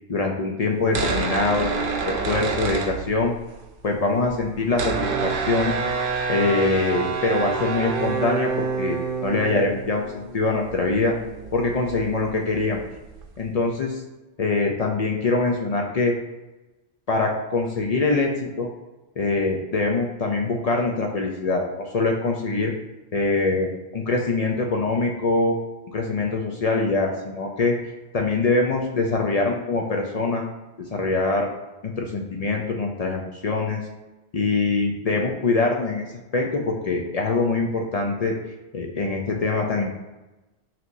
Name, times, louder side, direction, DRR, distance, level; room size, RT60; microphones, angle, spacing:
voice 1, 0.1-3.3 3.8-5.7 6.3-11.1 11.5-12.8 13.4-14.0 14.4-16.1 17.1-18.7 19.2-22.7 23.1-25.6 25.9-27.8 28.1-30.5 30.9-31.5 32.0-33.8 34.3-36.0 36.3-38.3 38.7-39.9, left 3 dB, 55° left, 1 dB, 0.4 m, -23 dB
sound 1, 0.8-3.5 3.8-13.5, right 5 dB, 60° right, 0.6 m, -28 dB
5.8 x 2.9 x 2.6 m, 1.1 s
omnidirectional pair, 1.2 m